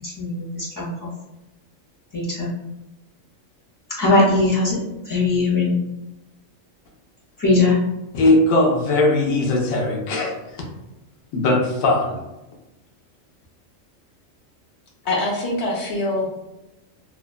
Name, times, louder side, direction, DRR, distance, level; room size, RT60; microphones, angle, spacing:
voice 1, 0.0-0.9 2.1-2.5 4.0-4.8 5.1-5.7 7.4-7.8, left 2 dB, 30° left, -5 dB, 0.4 m, -19 dB
voice 2, 8.1-10.6 11.3-12.2, left 2 dB, 90° left, 0 dB, 1.0 m, -19 dB
voice 3, 15.0-16.3, left 2 dB, 60° left, -2 dB, 0.9 m, -24 dB
2.8 x 2.2 x 2.2 m, 0.95 s
omnidirectional pair, 1.4 m